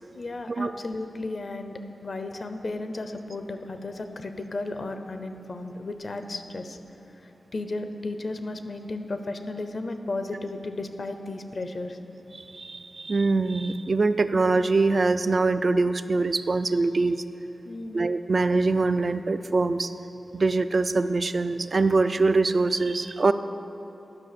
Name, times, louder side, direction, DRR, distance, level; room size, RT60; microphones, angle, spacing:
voice 1, 0.1-6.8 7.2-12.0 17.6-18.0, left 2 dB, 55° left, 7 dB, 0.6 m, -34 dB
voice 2, 12.3-17.2 17.9-19.9 20.3-23.3, right 3 dB, 50° right, 11 dB, 0.3 m, -23 dB
10.5 x 5.8 x 6.7 m, 2.9 s
wide cardioid pair, 75°, 0 cm